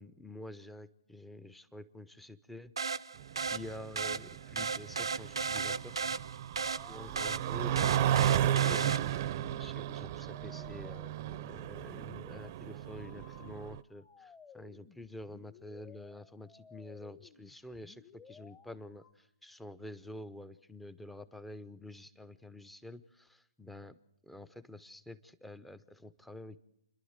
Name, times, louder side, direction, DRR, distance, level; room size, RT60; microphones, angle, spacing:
voice 1, 0.0-2.7 3.4-6.0 6.9-24.0 24.2-26.6, left 1 dB, 5° left, 15 dB, 0.7 m, -48 dB
sound 1, 2.8-9.4, right 5 dB, 80° right, 0.6 m, -36 dB
sound 2, 3.2-13.8, right 11 dB, 40° right, 0.7 m, -34 dB
sound 3, 6.6-19.1, left 6 dB, 20° left, 1.3 m, -57 dB
29.0 x 11.0 x 8.0 m, 0.82 s
hypercardioid pair, 135°, 3 cm